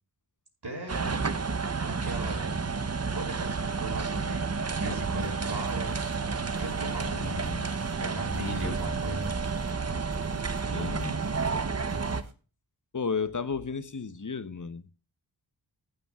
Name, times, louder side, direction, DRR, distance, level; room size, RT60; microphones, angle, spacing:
voice 1, 0.6-1.2 1.9-2.6 3.1-4.4 4.8-6.1 6.6-7.5 8.0-9.3, right 1 dB, 60° right, 5.8 m, -38 dB
sound 1, 0.9-12.2, right 4 dB, 35° right, 0.7 m, -31 dB
sound 2, 5.2-12.3, right 3 dB, 90° right, 1.3 m, -48 dB
voice 2, 7.2-7.7 8.6-9.0 10.7-11.2 12.9-14.9, left 5 dB, 40° left, 0.9 m, -34 dB
15.0 x 9.1 x 2.4 m
wide cardioid pair, 50°, 47 cm